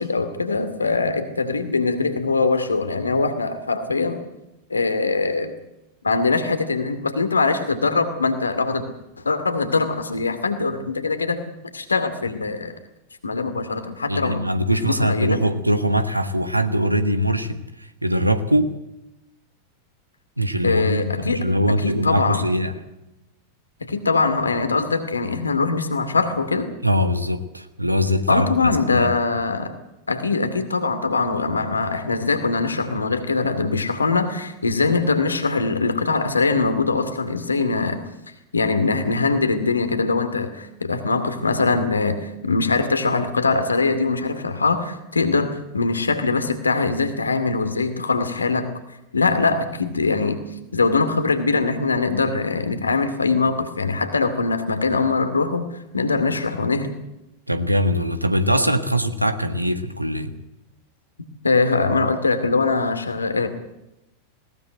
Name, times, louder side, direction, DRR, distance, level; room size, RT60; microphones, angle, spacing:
voice 1, 0.0-4.2 4.7-5.6 6.0-8.8 9.2-12.7 13.2-14.4 14.7-15.4 20.6-21.5 21.8-22.5 23.8-26.7 28.3-29.7 30.1-38.0 38.5-48.7 49.1-50.4 50.7-55.7 55.9-56.9 61.4-63.5, left 3 dB, 75° left, 9 dB, 2.3 m, -22 dB
voice 2, 14.1-18.8 20.4-22.7 26.8-29.1 57.5-60.3, equal, 85° right, 10 dB, 1.5 m, -22 dB
20.0 x 18.5 x 7.8 m, 0.90 s
figure-of-eight pair, 90°, 0 cm